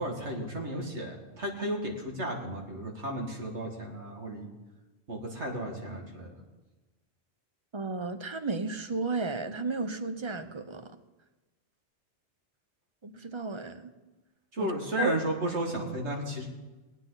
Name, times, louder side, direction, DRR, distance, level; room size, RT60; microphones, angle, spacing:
voice 1, 0.0-4.5 5.1-6.4 14.5-16.5, right 1 dB, 75° right, 0 dB, 2.5 m, -33 dB
voice 2, 7.7-10.9 13.0-13.9 14.6-14.7 15.0-15.1, right 4 dB, 30° right, 9 dB, 0.7 m, -33 dB
20.0 x 9.2 x 4.0 m, 1.2 s
omnidirectional pair, 1.2 m